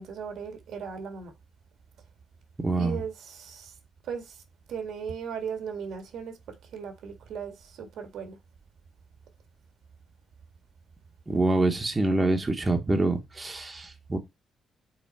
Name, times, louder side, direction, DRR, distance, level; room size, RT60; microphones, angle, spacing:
voice 1, 0.0-1.3 2.7-3.7 4.0-4.4 4.7-8.4, right 6 dB, 80° right, 1.7 m, -37 dB
voice 2, 2.6-3.0 11.3-14.2, right 2 dB, 20° right, 1.2 m, -25 dB
5.7 x 4.1 x 4.2 m
cardioid pair, 115°, 0 cm